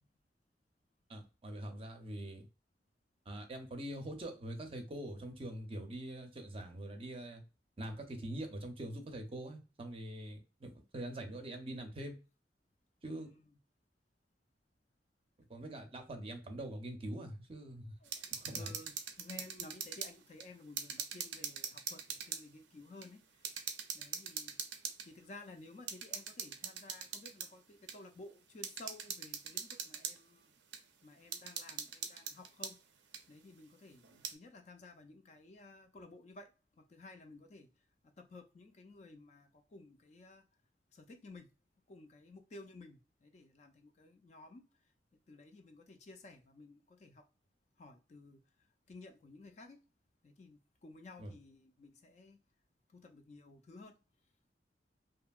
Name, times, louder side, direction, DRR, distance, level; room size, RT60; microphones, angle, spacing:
voice 1, 1.1-2.5 3.3-7.4 7.8-12.1 13.0-13.3 15.5-17.9 18.4-18.7 51.2-51.3, right 1 dB, 30° right, 0.5 m, -44 dB
voice 2, 13.0-13.5 15.7-15.9 18.0-18.1 18.5-23.5 23.9-24.6 25.0-30.5 31.0-32.8 33.3-36.5 36.8-37.7 38.2-40.5 40.9-41.5 41.9-44.6 45.3-47.2 47.8-48.4 48.9-49.8 50.2-52.4 52.9-53.9, left 2 dB, 40° left, 0.3 m, -54 dB
sound 1, 18.0-20.1 20.4-22.4 23.0-23.1 23.4-25.1 25.9-27.5 27.9-28.0 28.6-30.2 30.7-30.8 31.3-32.7 33.1-33.2 34.0-34.3, right 7 dB, 85° right, 0.5 m, -42 dB
2.7 x 2.6 x 2.2 m
head